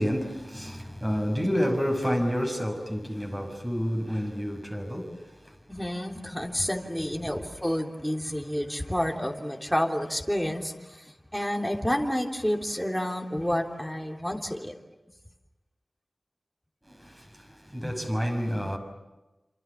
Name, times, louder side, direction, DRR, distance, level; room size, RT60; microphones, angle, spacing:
voice 1, 0.0-5.5 16.9-18.8, equal, 15° right, 6.3 m, -29 dB
voice 2, 5.7-14.7 17.8-17.9, equal, ahead, 3.3 m, -29 dB
28.0 x 27.5 x 7.4 m
wide cardioid pair, 85°, 0 cm